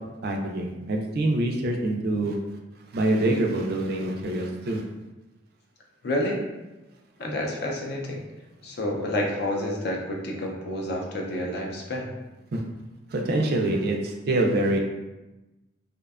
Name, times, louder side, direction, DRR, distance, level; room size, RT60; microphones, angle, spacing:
voice 1, 0.2-2.4 2.9-4.8 12.5-12.6 13.1-14.8, right 1 dB, 55° right, 2 dB, 0.3 m, -25 dB
voice 2, 6.0-6.4 7.2-8.2 8.6-12.1, left 1 dB, 60° left, 0 dB, 0.4 m, -29 dB
2.5 x 2.1 x 2.3 m, 1.0 s
head